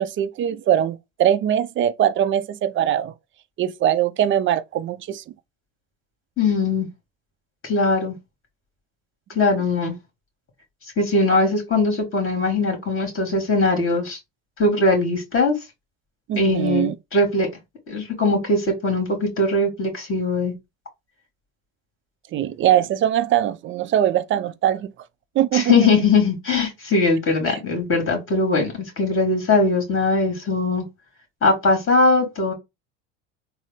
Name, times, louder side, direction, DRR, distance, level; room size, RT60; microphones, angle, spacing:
voice 1, 0.0-3.1 3.6-5.2 11.3-11.4 16.3-17.0 22.3-24.9 25.4-25.9 27.5-27.6, right 11 dB, 35° right, 0.4 m, -21 dB
voice 2, 6.4-6.9 7.6-8.1 9.4-10.0 11.0-14.2 14.6-15.6 16.4-17.5 17.9-20.5 25.5-30.8 31.4-32.5, left 3 dB, 35° left, 2.2 m, -20 dB
3.9 x 2.0 x 3.5 m
supercardioid pair, 85°, 36 cm